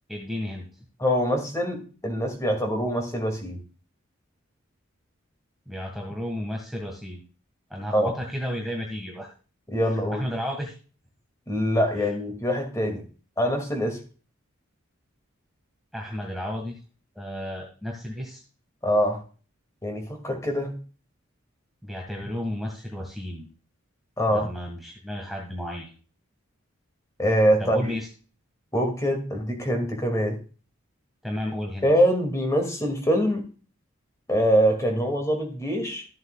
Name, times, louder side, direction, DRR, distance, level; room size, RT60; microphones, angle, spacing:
voice 1, 0.1-0.6 5.7-7.2 7.7-9.3 9.8-10.7 12.0-12.1 15.9-16.8 17.2-18.4 21.8-23.5 24.3-25.9 27.6-28.1 31.2-31.9, equal, ahead, -1 dB, 1.7 m, -33 dB
voice 2, 1.0-3.6 7.9-8.1 9.7-10.2 11.5-13.1 13.4-14.0 18.8-19.2 19.8-20.8 24.2-24.5 27.2-28.0 28.7-30.4 31.8-33.5 34.3-36.1, equal, 15° left, 4 dB, 2.3 m, -24 dB
14.0 x 7.8 x 2.4 m, 0.36 s
head